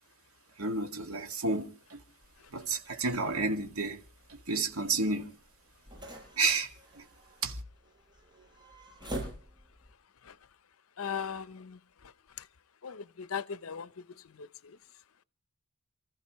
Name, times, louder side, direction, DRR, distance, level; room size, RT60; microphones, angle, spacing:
voice 1, 0.6-2.0 2.5-4.0 4.3-5.4 6.4-7.1 7.4-7.6, right 3 dB, 85° right, 2.2 m, -31 dB
sound 1, 2.2-9.9, right 1 dB, 20° right, 7.6 m, -47 dB
voice 2, 11.0-11.8 12.8-14.0 14.4-14.8, left 7 dB, 75° left, 0.7 m, -38 dB
29.0 x 14.5 x 3.1 m
head